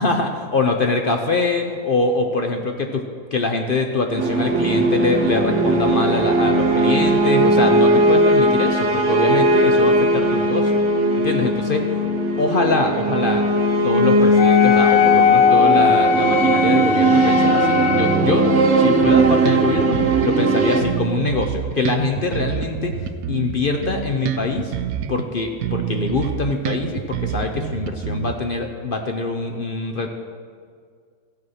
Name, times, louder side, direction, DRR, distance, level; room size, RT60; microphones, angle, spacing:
voice 1, 0.0-3.0 3.3-10.7 11.1-11.9 12.4-13.5 13.8-18.5 18.8-22.9 23.3-24.7 25.1-30.1, left 3 dB, 50° left, 4 dB, 0.7 m, -23 dB
sound 1, 4.2-20.8, right 1 dB, 55° right, 1.2 m, -18 dB
Wind instrument woodwind instrument, 14.4-18.3, left 6 dB, 80° left, 1.2 m, -18 dB
Bass guitar, 19.0-20.5 20.8-25.3 25.6-28.6, right 9 dB, 75° right, 1.1 m, -27 dB
14.5 x 8.1 x 5.7 m, 2.1 s
omnidirectional pair, 1.6 m